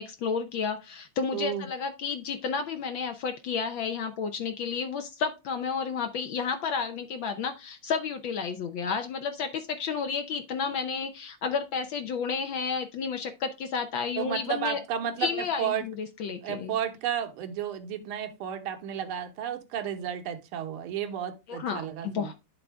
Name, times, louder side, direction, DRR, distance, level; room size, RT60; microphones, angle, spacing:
voice 1, 0.0-14.8 15.2-16.7 21.5-22.3, left 6 dB, 70° left, 6 dB, 1.4 m, -31 dB
voice 2, 1.3-1.7 14.2-15.9 16.4-22.3, right 9 dB, 75° right, 6 dB, 1.9 m, -32 dB
11.0 x 3.8 x 3.4 m, 0.25 s
omnidirectional pair, 2.4 m